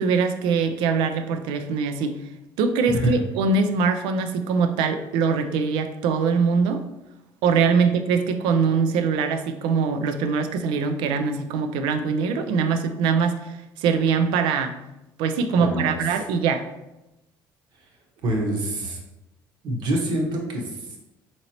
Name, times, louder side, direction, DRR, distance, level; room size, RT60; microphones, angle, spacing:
voice 1, 0.0-2.2 2.6-6.8 7.4-14.8 15.2-16.6, right 5 dB, 85° right, 8 dB, 0.4 m, -22 dB
voice 2, 15.5-16.0 18.2-19.0 19.6-21.0, right 1 dB, 65° right, 0 dB, 0.9 m, -26 dB
3.8 x 2.9 x 2.8 m, 0.93 s
cardioid pair, 110°, 8 cm